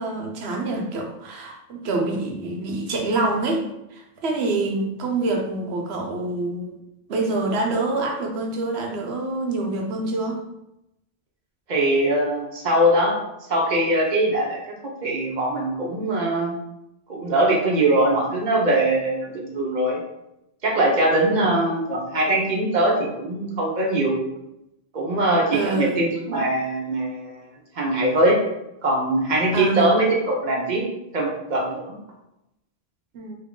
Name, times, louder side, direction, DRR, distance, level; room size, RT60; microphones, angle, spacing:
voice 1, 0.0-6.7 7.1-10.4 21.2-21.6 25.5-26.0 29.5-30.0 33.1-33.4, right 2 dB, 80° right, 2 dB, 1.0 m, -26 dB
voice 2, 11.7-13.1 13.5-16.5 17.1-20.0 20.6-24.2 24.9-27.4 27.8-28.4 28.8-30.8 31.1-32.0, right 1 dB, 45° right, -2 dB, 1.0 m, -22 dB
3.6 x 3.1 x 3.7 m, 0.88 s
omnidirectional pair, 1.1 m